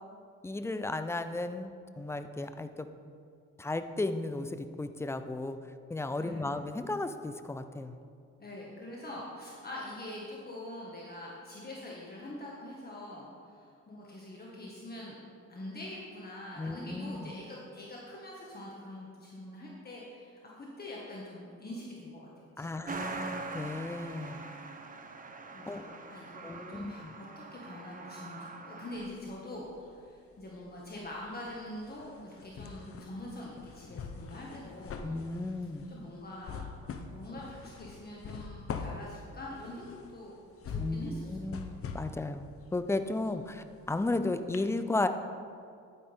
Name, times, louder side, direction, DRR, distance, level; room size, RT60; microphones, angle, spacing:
voice 1, 0.4-2.9 3.6-5.6 5.9-8.0 16.6-17.3 22.6-24.4 25.7-25.8 26.4-27.1 35.0-35.9 40.8-45.1, left 2 dB, 10° left, 10 dB, 0.5 m, -34 dB
voice 2, 6.2-6.5 8.4-15.2 15.5-22.8 25.5-35.1 35.9-36.6 37.1-40.3 40.7-41.4, left 1 dB, 30° left, -4 dB, 1.7 m, -44 dB
Truck, 22.9-29.1, right 3 dB, 25° right, 0.9 m, -43 dB
sound 1, 28.9-30.1 30.4-44.1 44.5-44.6, left 5 dB, 50° left, 0.8 m, -44 dB
11.0 x 9.4 x 3.6 m, 2.3 s
cardioid pair, 90°, 30 cm